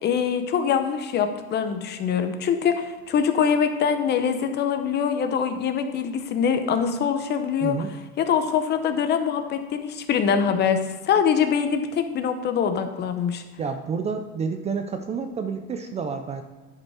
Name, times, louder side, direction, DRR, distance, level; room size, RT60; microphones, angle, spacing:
voice 1, 0.0-7.8 8.2-10.8 11.1-13.4, left 7 dB, 35° left, 7 dB, 0.8 m, -23 dB
voice 2, 7.6-7.9 13.6-16.4, right 5 dB, 20° right, 7 dB, 0.4 m, -29 dB
10.5 x 5.3 x 4.8 m, 1.3 s
supercardioid pair, 140°, 30 cm